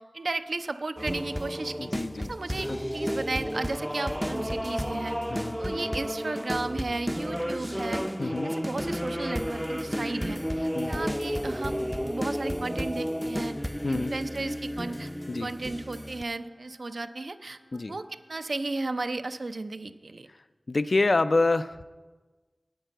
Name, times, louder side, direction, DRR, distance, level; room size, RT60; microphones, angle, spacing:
voice 1, 0.0-1.9 2.2-13.5 13.9-15.1 15.4-17.6 17.9-20.3, right 2 dB, 80° right, 10 dB, 0.5 m, -34 dB
sound 1, 1.0-16.2, equal, ahead, 0.4 m, -32 dB
voice 2, 1.8-2.3 2.7-2.8 5.3-5.6 8.2-8.5 10.7-11.0 13.8-14.1 15.3-15.5 17.7-18.0 20.7-21.8, left 3 dB, 70° left, 12 dB, 0.3 m, -27 dB
Wind instrument woodwind instrument, 14.9-18.9, equal, 85° left, 2.9 m, -61 dB
9.3 x 8.8 x 7.7 m, 1.3 s
wide cardioid pair, 50°, 0 cm